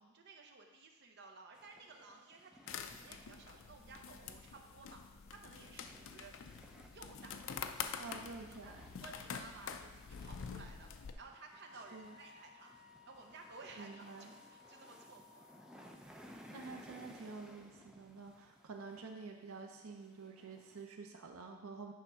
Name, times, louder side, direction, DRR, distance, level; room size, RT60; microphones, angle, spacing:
voice 1, 0.0-5.0 5.3-6.3 6.9-8.7 9.0-12.8 13.1-14.2 14.5-15.5 17.7-18.0, right 3 dB, 55° right, 2 dB, 0.8 m, -56 dB
sound 1, 1.5-20.9, equal, 5° right, 0.5 m, -60 dB
sound 2, 2.7-11.1, left 7 dB, 65° left, 0.4 m, -47 dB
voice 2, 8.0-8.8 11.9-12.1 13.8-14.3 16.2-21.9, right 4 dB, 85° right, 2 dB, 0.7 m, -49 dB
Wind instrument woodwind instrument, 11.5-15.9, left 6 dB, 35° right, 2.3 m, -62 dB
8.6 x 3.6 x 5.6 m, 1.2 s
head